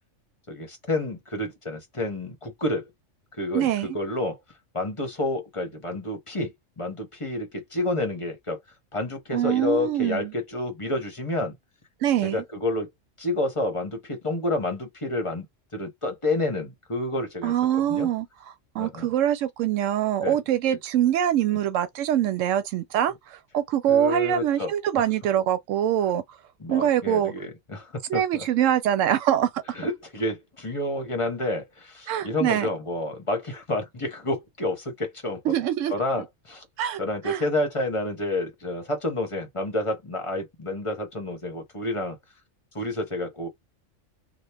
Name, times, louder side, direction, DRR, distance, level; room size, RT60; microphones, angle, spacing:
voice 1, 0.5-2.9 3.4-4.4 4.7-8.6 8.9-11.6 12.2-12.9 13.2-15.5 15.7-18.1 18.8-19.1 20.2-20.4 23.9-25.0 26.6-28.5 29.7-35.4 35.9-36.7 37.0-42.2 42.7-43.5, left 2 dB, 30° left, 0.9 m, -29 dB
voice 2, 3.5-3.9 9.3-10.3 12.0-12.4 17.4-18.3 18.7-26.2 26.7-27.3 28.1-29.6 32.1-32.7 35.5-35.9 36.8-37.0 37.2-37.4, right 11 dB, 85° right, 0.9 m, -24 dB
3.0 x 2.3 x 3.4 m
omnidirectional pair, 1.3 m